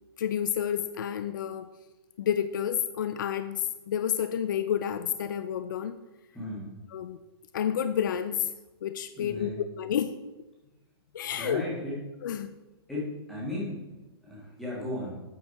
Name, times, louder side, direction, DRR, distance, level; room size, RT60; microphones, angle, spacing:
voice 1, 0.2-1.7 2.2-6.0 6.9-7.2 7.5-8.5 8.8-10.1 11.1-11.6 12.2-12.5, left 9 dB, 50° left, 11 dB, 0.4 m, -30 dB
voice 2, 6.3-6.7 9.2-9.6 11.3-12.0 12.9-15.1, left 1 dB, ahead, -7 dB, 1.7 m, -36 dB
8.7 x 5.7 x 4.1 m, 1.0 s
hypercardioid pair, 175°, 14 cm